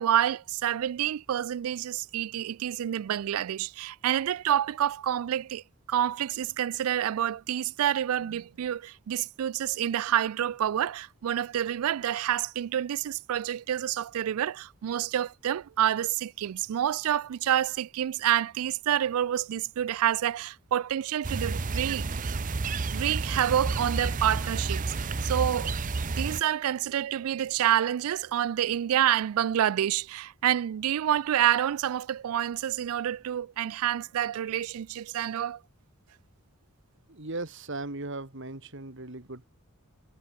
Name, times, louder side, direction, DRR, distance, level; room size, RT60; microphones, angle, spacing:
voice 1, 0.0-5.6 5.9-22.2 22.9-25.7 26.1-35.6, right 10 dB, 75° right, 0.3 m, -28 dB
sound 1, 21.2-26.4, right 3 dB, 35° right, 0.6 m, -30 dB
voice 2, 37.1-39.5, right 2 dB, 55° right, 2.4 m, -37 dB
head